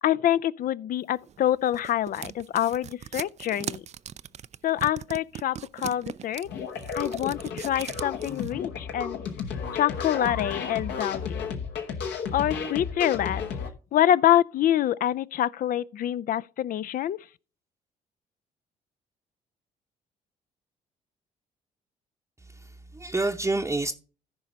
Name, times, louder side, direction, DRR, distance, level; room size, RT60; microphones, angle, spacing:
voice 1, 0.0-3.8 4.6-6.5 6.9-9.2 9.7-11.6 12.3-13.4 13.9-17.3, left 11 dB, 50° left, 0.4 m, -26 dB
sound 1, 1.3-8.5, right 9 dB, 40° right, 0.4 m, -39 dB
sound 2, 6.4-13.7, left 6 dB, 70° left, 1.2 m, -33 dB
voice 2, 22.5-23.9, right 2 dB, 15° right, 0.8 m, -28 dB
14.5 x 5.0 x 3.9 m
hypercardioid pair, 50°, 19 cm